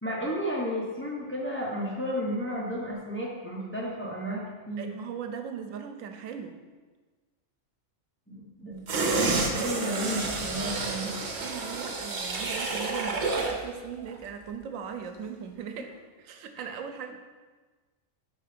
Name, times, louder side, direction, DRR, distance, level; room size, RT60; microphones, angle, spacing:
voice 1, 0.0-4.9 8.3-11.2 16.5-16.7, equal, 10° left, -5 dB, 0.8 m, -33 dB
voice 2, 4.8-6.6 11.3-15.9 16.2-17.1, right 7 dB, 90° right, 6 dB, 1.0 m, -39 dB
sound 1, 8.9-13.6 14.0-14.1, right 3 dB, 60° right, 1.0 m, -29 dB
4.6 x 4.4 x 5.1 m, 1.3 s
omnidirectional pair, 1.3 m